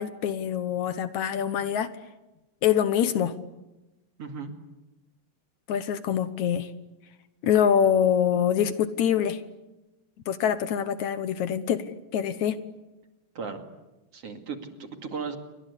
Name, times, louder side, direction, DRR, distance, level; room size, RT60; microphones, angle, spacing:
voice 1, 0.0-1.9 2.6-3.3 5.7-6.7 7.4-9.4 10.3-11.8 12.1-12.6, left 9 dB, 70° left, 12 dB, 2.4 m, -24 dB
voice 2, 4.2-4.5 13.3-13.6 14.1-15.4, right 5 dB, 50° right, 5 dB, 3.1 m, -36 dB
28.5 x 24.5 x 8.4 m, 1.0 s
omnidirectional pair, 3.6 m